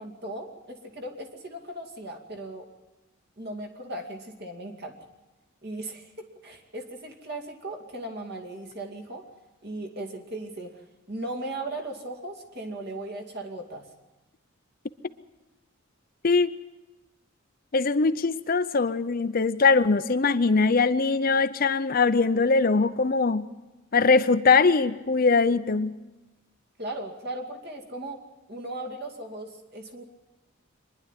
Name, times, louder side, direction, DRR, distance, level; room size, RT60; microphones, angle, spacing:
voice 1, 0.0-2.7 3.4-4.9 5.6-9.2 9.6-10.8 11.1-13.9 26.8-28.2 28.5-30.0, right 1 dB, 50° right, 2 dB, 2.4 m, -37 dB
voice 2, 17.7-23.4 23.9-26.0, left 4 dB, 45° left, 11 dB, 0.6 m, -22 dB
24.5 x 11.0 x 9.9 m, 1.1 s
head